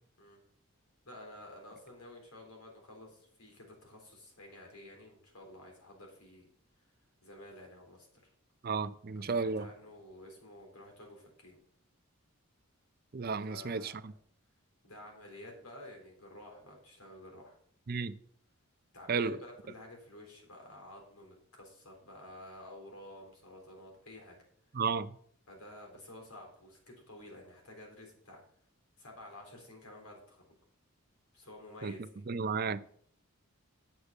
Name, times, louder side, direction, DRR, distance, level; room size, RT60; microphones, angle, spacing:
voice 1, 1.1-6.5 7.2-8.1 9.1-11.6 13.3-14.0 14.8-17.6 18.9-24.4 25.5-28.4 29.0-30.4 31.3-32.3, left 1 dB, 90° left, 3.8 m, -51 dB
voice 2, 8.6-9.7 13.1-14.1 17.9-18.1 19.1-19.4 24.7-25.1 31.8-31.9 32.3-32.8, right 5 dB, 45° right, 0.5 m, -33 dB
8.2 x 6.7 x 7.0 m
head